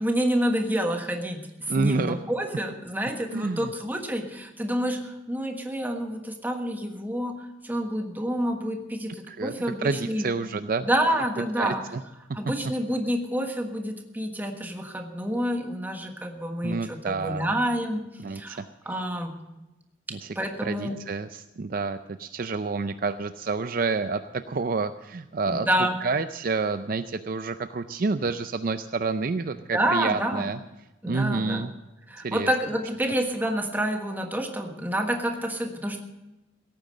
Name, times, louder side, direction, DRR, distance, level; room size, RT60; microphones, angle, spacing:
voice 1, 0.0-10.3 10.8-11.8 12.3-18.1 18.3-19.3 20.3-21.0 25.5-26.0 29.7-30.4 31.0-31.7 32.1-36.0, equal, 10° right, 3 dB, 1.4 m, -28 dB
voice 2, 1.7-2.2 3.3-3.7 9.3-10.9 11.4-12.0 16.6-17.5 18.2-18.7 20.1-20.3 20.6-25.7 26.0-30.6 31.1-31.7 32.2-32.5, right 4 dB, 50° right, 10 dB, 0.5 m, -29 dB
17.0 x 9.2 x 6.6 m, 0.99 s
head